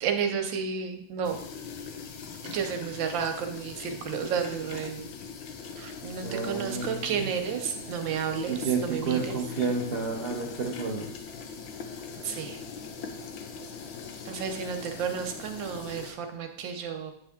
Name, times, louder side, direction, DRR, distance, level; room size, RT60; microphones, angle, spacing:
voice 1, 0.0-1.4 2.4-5.1 5.8-9.3 12.2-12.6 14.3-17.1, right 7 dB, 85° right, 5 dB, 1.5 m, -32 dB
sound 1, 1.2-16.1, left 5 dB, 90° left, 1.5 m, -41 dB
voice 2, 6.2-7.3 8.5-11.1, right 5 dB, 65° right, -1 dB, 0.6 m, -30 dB
8.7 x 3.6 x 3.5 m, 0.73 s
omnidirectional pair, 2.0 m